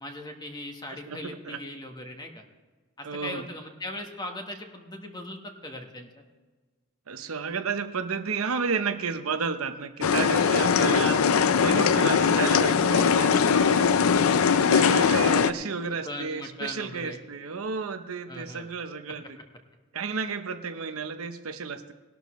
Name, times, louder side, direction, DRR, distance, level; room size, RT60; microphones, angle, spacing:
voice 1, 0.0-2.4 3.0-6.1 16.0-17.2 18.3-18.7, left 1 dB, 20° left, 4 dB, 1.2 m, -39 dB
voice 2, 0.9-1.6 3.0-3.5 7.1-19.2 19.9-21.9, right 5 dB, 75° right, 8 dB, 0.8 m, -32 dB
sound 1, 10.0-15.5, left 6 dB, 75° left, 0.5 m, -21 dB
19.0 x 12.0 x 3.1 m, 1.3 s
head